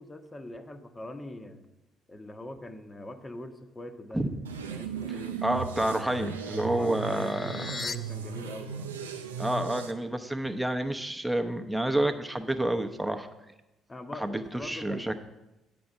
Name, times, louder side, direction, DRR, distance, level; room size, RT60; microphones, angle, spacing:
voice 1, 0.0-1.7 2.1-4.2 4.7-5.4 6.7-9.0 13.9-15.2, left 1 dB, 20° left, 8 dB, 1.0 m, -43 dB
sound 1, 4.4-9.9, right 6 dB, 85° right, 0.5 m, -37 dB
voice 2, 5.4-7.7 9.4-13.3 14.2-15.2, right 1 dB, 5° right, 6 dB, 0.9 m, -29 dB
sound 2, 5.7-8.0, left 4 dB, 40° left, 0.5 m, -41 dB
9.6 x 5.4 x 7.1 m, 0.96 s
figure-of-eight pair, 50°, 0 cm